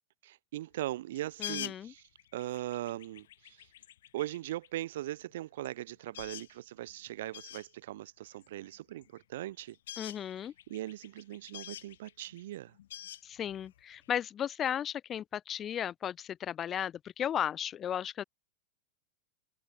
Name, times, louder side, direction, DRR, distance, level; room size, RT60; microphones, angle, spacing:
voice 1, 0.2-2.0 2.3-3.7 4.1-9.8 10.7-12.7, right 14 dB, 55° right, 1.9 m, -40 dB
sound 1, 1.1-4.7 5.3-5.4 5.6-5.7 6.0-6.6 6.9-7.0 7.3-7.7 8.4-9.2 9.5-14.1, left 12 dB, 60° left, 2.5 m, -46 dB
voice 2, 1.4-1.9 10.0-10.5 13.2-18.2, left 9 dB, 25° left, 2.9 m, -35 dB
figure-of-eight pair, 90°, 0 cm